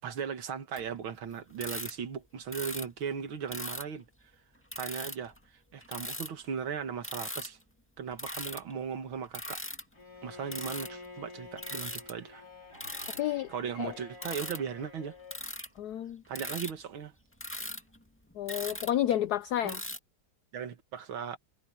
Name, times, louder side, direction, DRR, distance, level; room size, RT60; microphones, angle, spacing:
voice 1, 0.0-4.1 4.8-5.3 5.7-7.6 8.0-9.6 10.2-12.4 13.5-15.2 16.3-17.1 19.6-19.8 20.5-21.4, right 7 dB, 70° right, 2.4 m, -37 dB
sound 1, 0.8-0.9 1.5-1.9 2.5-2.9 3.5-3.8 4.7-5.4 5.8-6.5 7.0-7.5 8.1-8.7 9.2-9.8 10.5-11.1 11.6-12.1 12.7-13.2 14.1-14.6 15.3-15.8 16.3-16.7 17.4-19.3 19.7-20.0, left 1 dB, 5° left, 2.0 m, -39 dB
Bowed string instrument, 9.9-15.5, left 3 dB, 45° left, 5.1 m, -49 dB
voice 2, 13.2-13.5 13.8-13.9 15.8-16.2 18.4-19.8, left 12 dB, 80° left, 0.9 m, -30 dB
omnidirectional pair, 2.3 m